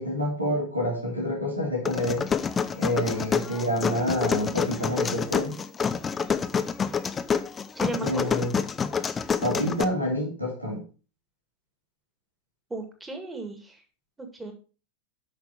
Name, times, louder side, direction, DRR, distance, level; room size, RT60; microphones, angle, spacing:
voice 1, 0.0-2.3 2.7-5.6 8.0-8.5 9.4-10.8, equal, 85° right, -2 dB, 3.2 m, -28 dB
sound 1, 1.9-9.8, left 6 dB, 20° left, 0.7 m, -27 dB
voice 2, 7.7-8.3 12.7-13.8 14.2-14.5, right 3 dB, 10° right, 5 dB, 2.2 m, -35 dB
8.6 x 6.2 x 5.2 m, 0.35 s
figure-of-eight pair, 90°, 0 cm